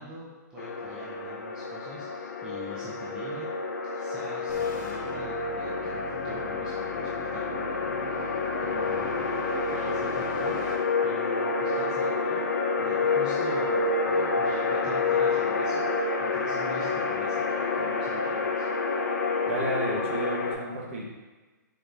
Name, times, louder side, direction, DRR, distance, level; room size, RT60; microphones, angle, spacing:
voice 1, 0.0-3.5 3.9-9.3 9.7-12.4 12.8-18.7, right 2 dB, 5° right, -8 dB, 0.4 m, -44 dB
sound 1, 0.6-20.5, left 4 dB, 65° left, 0.6 m, -28 dB
sound 2, 4.5-10.7, left 1 dB, 25° left, 0.7 m, -41 dB
voice 2, 19.5-21.0, right 1 dB, 40° right, -2 dB, 0.9 m, -32 dB
4.0 x 3.7 x 3.3 m, 1.3 s
hypercardioid pair, 165°, 10 cm